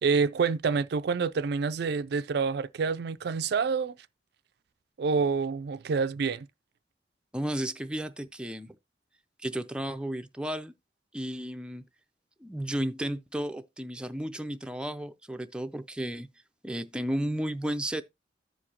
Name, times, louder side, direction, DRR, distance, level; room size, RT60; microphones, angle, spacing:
voice 1, 0.0-3.9 5.0-6.5, right 5 dB, 65° right, 0.4 m, -27 dB
voice 2, 7.3-8.8 9.4-10.7 11.1-11.9 12.4-16.3 16.6-18.0, right 1 dB, 5° right, 0.5 m, -33 dB
14.5 x 4.9 x 2.8 m
head